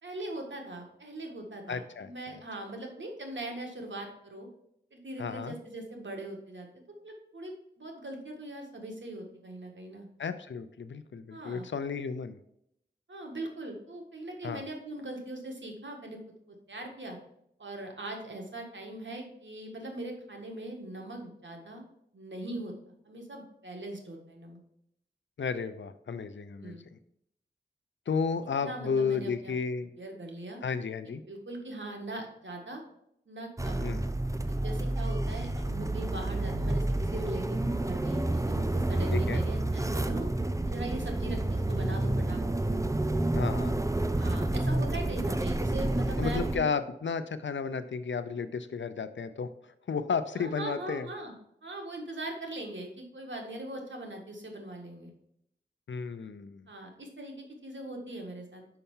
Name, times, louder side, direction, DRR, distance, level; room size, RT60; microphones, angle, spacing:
voice 1, 0.0-4.5 4.9-6.7 7.0-10.1 11.3-11.7 13.1-16.2 16.5-17.2 17.6-21.8 22.1-24.6 26.6-26.8 28.6-29.5 30.0-30.6 31.0-32.8 33.3-33.9 34.5-40.3 40.7-42.7 44.2-46.7 50.3-51.3 51.6-55.1 56.7-58.6, right 1 dB, 85° right, 2 dB, 1.7 m, -40 dB
voice 2, 1.7-2.4 5.2-5.6 10.2-12.4 14.4-14.6 25.4-27.0 28.1-29.9 30.6-31.2 33.8-34.0 39.1-39.4 43.3-43.7 46.2-51.1 55.9-56.7, left 5 dB, 85° left, 11 dB, 0.5 m, -33 dB
sound 1, 33.6-46.6, right 1 dB, 15° right, 0.6 m, -29 dB
5.7 x 5.5 x 5.5 m, 0.76 s
wide cardioid pair, 40°, 19 cm